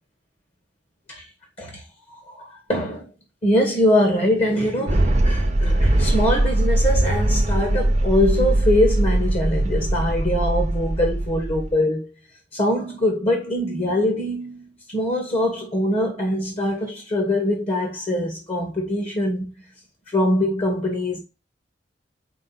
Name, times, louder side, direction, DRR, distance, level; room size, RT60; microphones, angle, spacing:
voice 1, 2.1-3.1 3.4-12.1 12.5-19.5 20.1-21.2, left 1 dB, 35° left, 2.0 m, -23 dB
sound 1, 4.9-11.7, right 1 dB, 40° right, 0.8 m, -21 dB
5.3 x 4.6 x 6.0 m
head